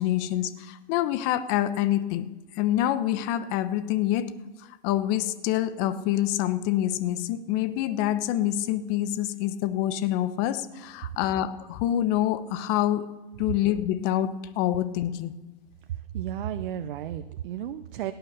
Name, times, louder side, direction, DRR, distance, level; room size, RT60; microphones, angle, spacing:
voice 1, 0.0-2.3 2.5-4.3 4.6-13.1 13.4-15.4, left 12 dB, 40° left, 13 dB, 1.0 m, -26 dB
voice 2, 15.9-18.1, right 10 dB, 60° right, 11 dB, 0.8 m, -33 dB
17.0 x 9.2 x 6.7 m, 1.1 s
hypercardioid pair, 120°, 29 cm